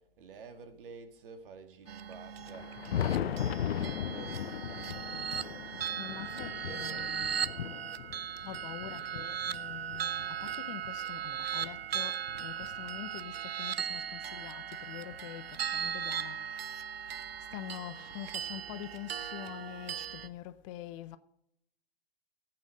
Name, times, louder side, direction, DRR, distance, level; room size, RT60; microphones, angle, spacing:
voice 1, 0.0-7.2, right 5 dB, 60° right, 2.1 m, -51 dB
sound 1, 1.9-20.3, right 8 dB, 80° right, 0.8 m, -38 dB
Thunder, 2.4-11.0 11.6-13.3 14.5-14.6 15.1-15.2 17.1-17.2 18.5-18.6 20.2-20.3, left 10 dB, 75° left, 0.6 m, -38 dB
voice 2, 6.0-7.3 8.4-17.0 17.5-21.2, left 13 dB, 35° left, 0.6 m, -45 dB
13.0 x 8.7 x 6.3 m
hypercardioid pair, 130°, 30 cm